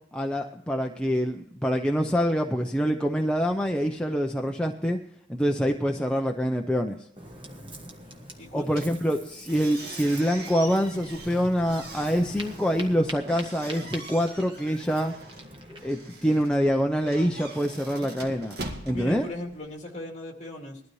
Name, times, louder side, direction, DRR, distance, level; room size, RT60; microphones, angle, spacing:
voice 1, 0.1-5.0 5.3-7.0 8.5-15.1 15.7-18.6 18.8-19.3, equal, 5° left, 2 dB, 0.6 m, -25 dB
Ocean, 7.2-15.9, right 1 dB, 25° right, 1.4 m, -44 dB
voice 2, 8.4-8.9 17.8-18.2 18.9-20.8, left 1 dB, 35° left, 2 dB, 2.3 m, -39 dB
sound 1, 8.7-19.8, right 2 dB, 55° right, 2.1 m, -43 dB
19.5 x 12.5 x 3.1 m, 0.70 s
head